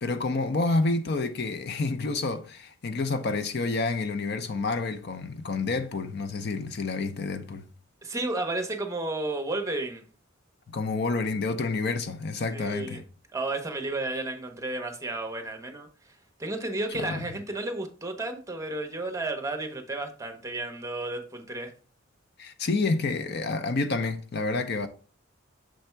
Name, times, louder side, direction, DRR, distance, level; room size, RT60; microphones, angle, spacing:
voice 1, 0.0-7.7 10.7-13.0 17.0-17.3 22.4-24.9, left 3 dB, 50° left, 0.5 m, -29 dB
voice 2, 8.0-10.0 12.5-13.0 13.3-16.1 16.4-21.7, right 2 dB, 15° right, 0.8 m, -32 dB
6.2 x 3.4 x 4.4 m
head